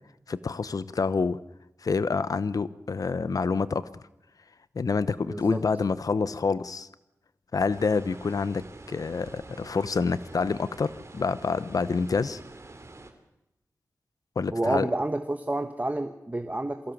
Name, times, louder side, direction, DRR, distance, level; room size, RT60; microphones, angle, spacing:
voice 1, 0.3-1.4 1.8-4.0 4.7-6.9 7.5-12.4 14.4-14.9, left 4 dB, 80° left, 16 dB, 0.9 m, -27 dB
voice 2, 5.3-5.6 14.5-16.9, right 1 dB, 25° right, 8 dB, 1.3 m, -29 dB
sound 1, 7.7-13.1, right 2 dB, 50° right, 2.8 m, -47 dB
23.0 x 16.0 x 7.3 m, 0.91 s
cardioid pair, 50°, 6 cm